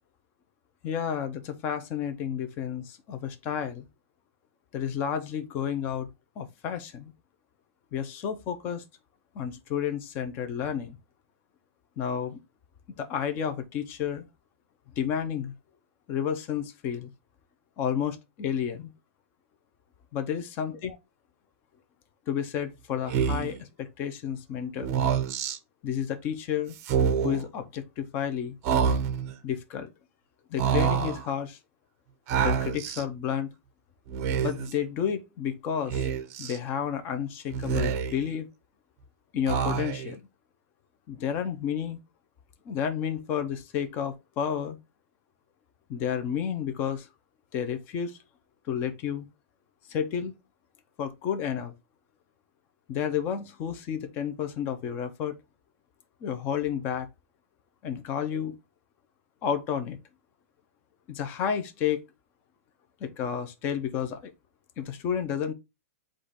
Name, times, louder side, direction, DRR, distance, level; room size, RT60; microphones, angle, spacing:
voice 1, 0.8-3.9 4.7-6.1 6.4-7.1 7.9-8.8 9.3-11.0 12.0-12.4 12.9-14.3 15.0-15.5 16.1-17.1 17.8-18.9 20.1-21.0 22.3-24.9 25.8-26.8 27.2-28.5 29.4-29.9 30.5-31.6 32.3-33.5 34.4-36.1 36.4-38.5 39.3-40.2 41.1-42.0 42.7-44.8 45.9-47.1 47.5-48.2 48.7-49.3 49.9-50.3 51.0-51.7 52.9-55.4 56.2-57.1 57.8-58.6 59.4-60.0 61.1-62.0 63.0-64.3 64.8-65.5, left 8 dB, 25° left, 0.5 m, -31 dB
Speech, 23.1-23.6 24.8-25.6 26.8-27.4 28.6-29.3 30.6-31.2 32.3-33.0 34.1-34.7 35.9-36.6 37.5-38.3 39.5-40.2, right 7 dB, 35° right, 0.6 m, -27 dB
4.0 x 2.5 x 4.5 m
hypercardioid pair, 155°, 8 cm